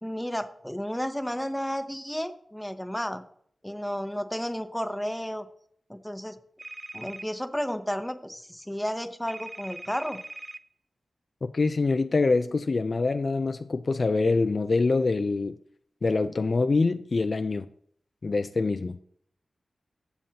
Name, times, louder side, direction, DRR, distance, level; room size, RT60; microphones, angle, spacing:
voice 1, 0.0-3.2 3.6-5.5 5.9-6.4 6.9-10.2, equal, 5° left, 0.8 m, -32 dB
sound 1, 6.6-7.3 9.3-10.6, right 2 dB, 25° right, 0.4 m, -41 dB
voice 2, 11.4-15.6 16.0-17.7 18.2-19.0, left 3 dB, 50° left, 0.4 m, -25 dB
15.0 x 7.0 x 2.8 m
wide cardioid pair, 95°, 0 cm